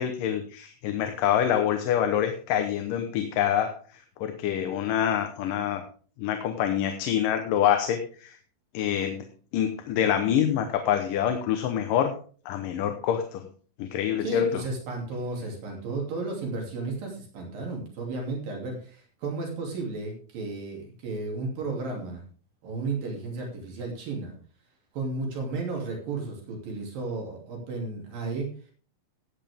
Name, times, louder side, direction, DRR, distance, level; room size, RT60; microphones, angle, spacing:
voice 1, 0.0-5.8 6.2-8.4 8.7-9.3 9.5-12.1 12.5-13.5 13.8-14.6, left 9 dB, 75° left, 6 dB, 2.5 m, -26 dB
voice 2, 14.2-22.2 22.6-24.3 24.9-28.5, right 3 dB, 75° right, 0 dB, 4.4 m, -33 dB
15.5 x 9.1 x 3.5 m, 0.42 s
omnidirectional pair, 4.0 m